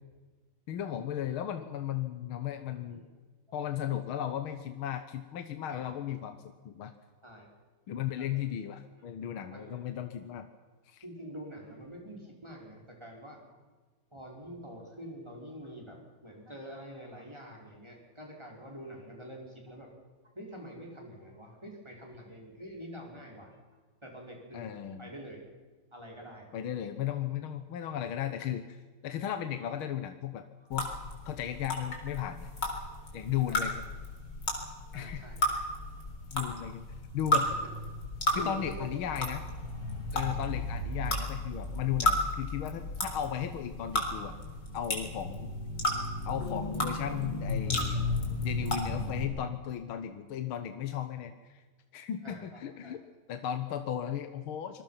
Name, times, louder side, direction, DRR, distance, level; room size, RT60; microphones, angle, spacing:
voice 1, 0.7-3.0 3.5-6.4 6.7-6.9 7.9-10.5 10.9-11.0 24.5-25.1 26.5-28.8 29.0-30.4 30.7-30.9 31.3-32.5 33.1-33.8 34.9-35.2 36.3-36.8 37.1-37.5 38.4-39.4 40.1-44.4 44.7-45.5 46.3-48.0 48.4-51.6 51.9-53.0 53.3-54.8, left 10 dB, 80° left, 8 dB, 1.9 m, -35 dB
voice 2, 9.3-9.8 11.0-13.4 14.1-19.9 20.4-23.6 24.0-24.7 25.0-25.5 25.9-26.5 28.3-28.5 33.5-33.7 34.9-35.4 38.3-39.2 43.3-43.4 52.2-53.0, equal, 10° right, -1 dB, 5.1 m, -46 dB
sound 1, 30.7-49.2, left 1 dB, 55° left, 4.6 m, -33 dB
26.0 x 21.5 x 5.8 m, 1.4 s
omnidirectional pair, 2.3 m